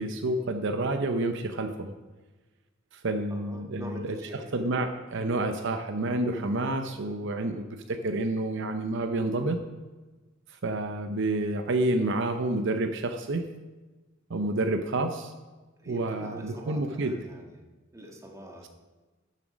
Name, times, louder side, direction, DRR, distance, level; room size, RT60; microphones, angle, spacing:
voice 1, 0.0-1.9 2.9-4.2 4.5-9.6 10.5-13.4 14.3-15.3 15.9-17.1, right 2 dB, 65° right, 7 dB, 0.7 m, -29 dB
voice 2, 3.3-4.7 15.8-17.6 17.9-18.7, equal, 15° right, 0 dB, 1.6 m, -44 dB
12.5 x 7.4 x 5.1 m, 1.2 s
head